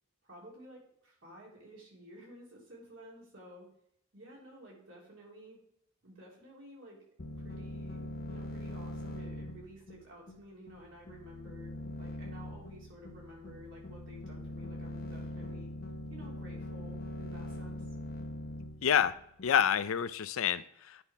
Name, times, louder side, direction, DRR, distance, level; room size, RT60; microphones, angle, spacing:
voice 1, 0.2-3.7 4.1-5.6 6.0-7.0 7.4-15.7 16.1-17.9, equal, 70° right, -4 dB, 3.7 m, -52 dB
sound 1, 7.2-19.7, left 1 dB, 45° left, 0.9 m, -42 dB
voice 2, 18.8-19.2 19.4-21.0, left 8 dB, 85° left, 15 dB, 0.5 m, -28 dB
10.0 x 5.8 x 3.5 m, 0.73 s
head